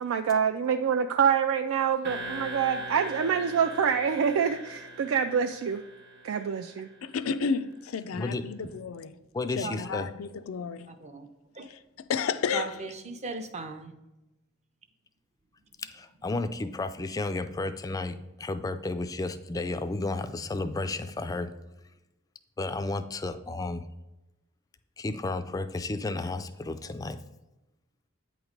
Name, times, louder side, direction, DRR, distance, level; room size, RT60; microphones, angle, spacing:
voice 1, 0.0-5.8 6.2-6.9, right 7 dB, 75° right, 0.3 m, -26 dB
sound 1, 2.0-7.0, right 1 dB, 60° right, 1.0 m, -41 dB
voice 2, 7.0-9.2 9.6-10.9 12.1-12.7, left 5 dB, 85° left, 0.4 m, -31 dB
voice 3, 8.1-8.5 9.3-10.1 15.8-21.5 22.6-23.8 25.0-27.2, left 2 dB, 15° left, 0.3 m, -32 dB
voice 4, 10.6-11.3 11.6-11.7 12.5-13.9, right 3 dB, 35° right, 0.6 m, -38 dB
8.8 x 3.1 x 5.1 m
head